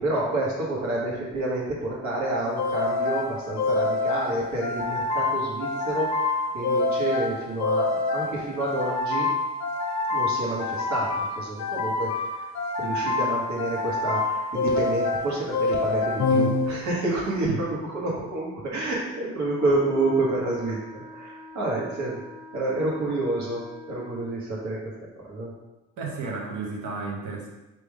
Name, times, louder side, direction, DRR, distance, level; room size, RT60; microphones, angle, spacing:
voice 1, 0.0-6.1 6.5-9.3 10.1-12.5 12.8-22.2 22.5-24.8 25.3-25.5, right 2 dB, 65° right, -4 dB, 1.4 m, -29 dB
sound 1, 2.6-17.1, left 3 dB, 65° left, 0.6 m, -26 dB
Wind instrument woodwind instrument, 19.5-24.4, left 4 dB, 5° right, 0.9 m, -44 dB
voice 2, 26.0-27.5, right 4 dB, 85° right, -1 dB, 0.9 m, -32 dB
3.6 x 3.0 x 4.6 m, 1.1 s
cardioid pair, 90°, 30 cm